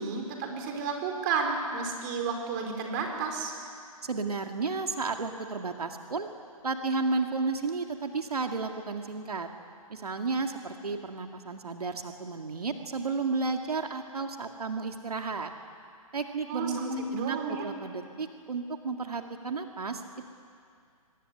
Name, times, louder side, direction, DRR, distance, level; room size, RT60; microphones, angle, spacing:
voice 1, 0.0-3.5 16.5-17.6, right 4 dB, 30° right, 3 dB, 4.6 m, -32 dB
voice 2, 4.0-6.3 6.6-9.5 9.9-15.5 16.1-16.8 17.1-20.3, right 4 dB, 90° right, 4 dB, 2.2 m, -32 dB
24.5 x 21.5 x 9.9 m, 2.3 s
hypercardioid pair, 150°, 19 cm